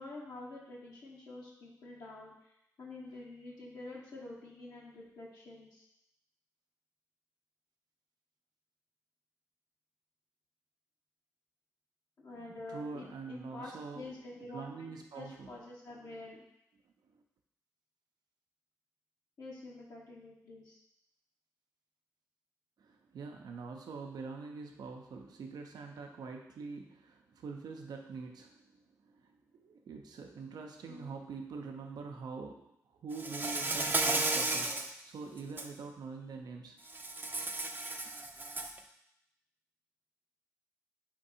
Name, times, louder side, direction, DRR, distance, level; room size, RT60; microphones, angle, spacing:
voice 1, 0.0-2.3 2.8-5.8 12.2-14.9 15.1-16.5 19.4-20.8 30.9-31.2, left 2 dB, 75° left, -4 dB, 1.0 m, -47 dB
voice 2, 12.4-14.1 14.5-15.5 22.8-28.6 29.0-29.3 29.6-36.8 38.1-38.2, right 4 dB, 80° right, 2 dB, 0.6 m, -45 dB
Insect, 33.2-34.9 35.4-35.7 36.9-38.8, right 2 dB, 30° right, 0.5 m, -33 dB
4.4 x 2.6 x 4.2 m, 0.78 s
supercardioid pair, 40°, 7 cm